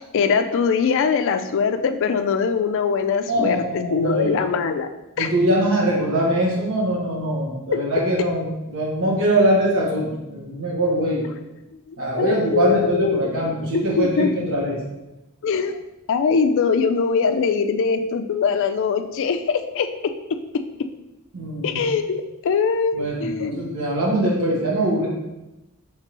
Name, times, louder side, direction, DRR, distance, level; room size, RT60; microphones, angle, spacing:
voice 1, 0.0-4.9 5.2-5.3 7.7-7.8 11.9-13.2 13.7-14.3 15.4-15.8 16.1-19.9 21.6-23.8, left 5 dB, 60° left, 8 dB, 0.3 m, -22 dB
voice 2, 3.3-4.3 5.2-11.3 12.0-14.8 21.3-21.8 22.9-25.1, right 1 dB, 65° right, -4 dB, 1.2 m, -22 dB
4.6 x 3.3 x 2.9 m, 0.97 s
head